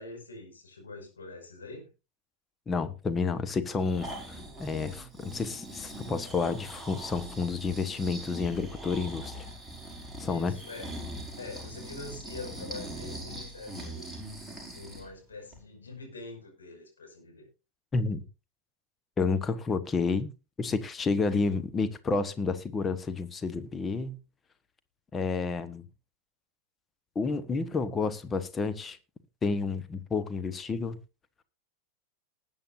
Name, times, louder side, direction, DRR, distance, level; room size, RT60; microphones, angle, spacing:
voice 1, 0.0-1.9 10.2-10.9 11.4-14.1 14.7-17.5, left 3 dB, 70° left, 5.7 m, -44 dB
voice 2, 2.7-9.5 10.2-10.5 17.9-18.2 19.2-20.3 20.6-24.2 25.1-25.8 27.1-29.0 29.4-31.0, left 4 dB, 20° left, 1.2 m, -30 dB
Breathing, 3.7-15.1 15.5-15.6, right 1 dB, ahead, 5.4 m, -42 dB
20.0 x 9.0 x 2.6 m
figure-of-eight pair, 90°, 0 cm